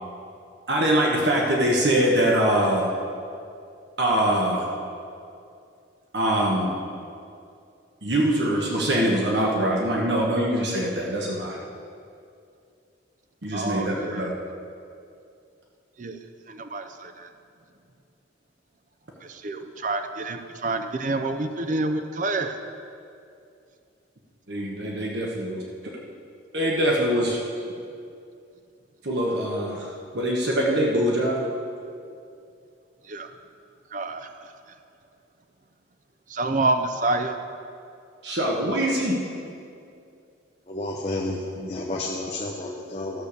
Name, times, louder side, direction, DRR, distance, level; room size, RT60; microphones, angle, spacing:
voice 1, 0.7-2.9 4.0-4.7 6.1-6.8 8.0-11.6 13.4-14.3 24.5-25.6 26.5-27.4 29.0-31.4 38.2-39.2 41.6-41.7, right 1 dB, 60° right, -2 dB, 1.3 m, -23 dB
voice 2, 13.5-14.3 16.0-16.2 16.5-17.3 19.2-22.6 33.0-33.3 33.9-34.5 36.3-37.4, right 2 dB, 40° right, 7 dB, 0.6 m, -28 dB
voice 3, 40.7-43.2, left 2 dB, 30° left, -2 dB, 0.8 m, -31 dB
13.0 x 6.7 x 6.8 m, 2.5 s
head